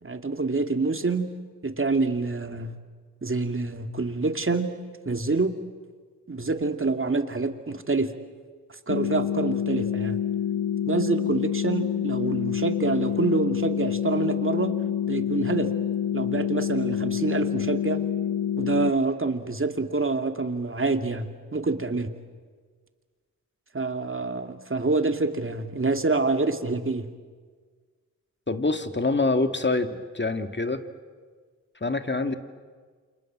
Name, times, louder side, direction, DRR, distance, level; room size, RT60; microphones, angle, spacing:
voice 1, 0.0-1.3 1.6-2.8 3.2-4.7 5.1-5.6 6.3-8.1 8.9-10.2 10.9-14.8 15.1-15.7 16.1-18.0 18.6-22.1 23.7-27.1, right 3 dB, 35° right, 7 dB, 2.5 m, -26 dB
sound 1, 8.9-18.9, left 9 dB, 70° left, 0.8 m, -27 dB
voice 2, 28.5-30.8 31.8-32.4, left 3 dB, 30° left, 8 dB, 2.2 m, -25 dB
28.5 x 26.0 x 7.7 m, 1.5 s
cardioid pair, 40°, 35 cm